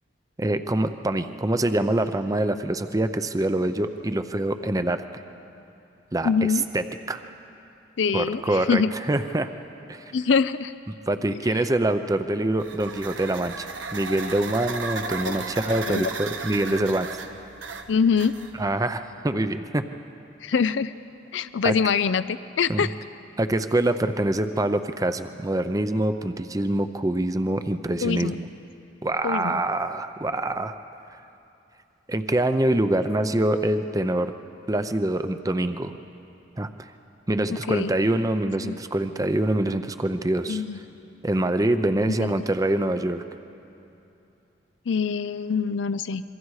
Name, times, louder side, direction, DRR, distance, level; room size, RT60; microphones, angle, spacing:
voice 1, 0.4-5.2 6.1-7.2 8.1-9.5 9.9-10.1 11.1-13.7 13.9-17.2 18.6-19.8 21.6-21.7 22.7-22.9 23.4-28.5 29.0-30.8 32.1-34.3 34.7-35.9 36.6-36.9 37.3-40.6 41.2-43.2, right 1 dB, 20° right, 9 dB, 0.6 m, -25 dB
voice 2, 6.2-6.6 8.0-8.9 10.1-10.7 15.1-15.4 15.9-16.1 17.9-18.3 20.4-20.9 21.3-22.9 28.0-28.4 29.2-29.6 37.5-37.9 38.6-38.8 40.5-40.8 42.1-42.3 44.9-46.2, left 6 dB, 75° left, 14 dB, 0.5 m, -24 dB
sound 1, 12.6-18.7, right 4 dB, 80° right, 1.4 m, -35 dB
27.0 x 23.5 x 4.8 m, 2.9 s
head